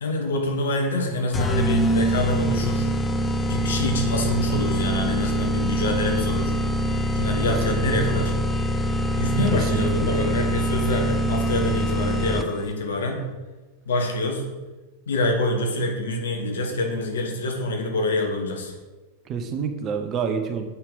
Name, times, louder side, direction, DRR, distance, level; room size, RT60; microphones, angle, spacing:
voice 1, 0.0-2.9 3.5-6.5 7.1-8.3 9.2-13.2 13.8-14.4 15.1-18.7, left 2 dB, 65° left, 2 dB, 1.6 m, -26 dB
sound 1, 1.3-12.7, equal, 15° left, 0.5 m, -24 dB
voice 2, 7.5-8.0 9.5-10.0 19.3-20.7, right 6 dB, 30° right, 6 dB, 0.9 m, -28 dB
7.6 x 5.7 x 5.2 m, 1.2 s
figure-of-eight pair, 90°, 0 cm